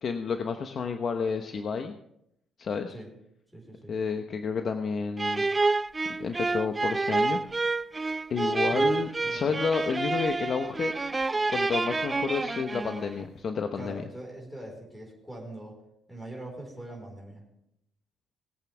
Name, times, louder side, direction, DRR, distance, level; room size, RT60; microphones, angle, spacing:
voice 1, 0.0-1.9 2.6-2.9 3.9-5.4 6.2-7.4 8.3-10.9 11.5-14.0, left 5 dB, 50° left, 6 dB, 1.0 m, -30 dB
voice 2, 3.5-3.9 8.7-8.9 9.2-9.6 13.7-15.7 16.1-17.5, right 1 dB, 5° left, 0 dB, 4.6 m, -42 dB
sound 1, 5.2-13.2, right 3 dB, 20° right, 0.3 m, -28 dB
21.0 x 8.3 x 3.5 m, 0.78 s
cardioid pair, 90°, 0 cm